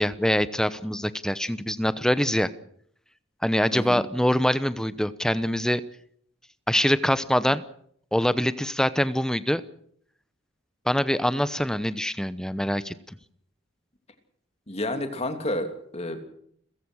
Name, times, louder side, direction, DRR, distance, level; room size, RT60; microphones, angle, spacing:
voice 1, 0.0-2.5 3.4-5.8 6.7-7.6 8.1-9.6 10.9-12.9, equal, 5° left, 14 dB, 0.9 m, -24 dB
voice 2, 3.7-4.0 14.7-16.2, left 1 dB, 35° left, 6 dB, 3.0 m, -30 dB
30.0 x 15.5 x 6.4 m, 0.66 s
head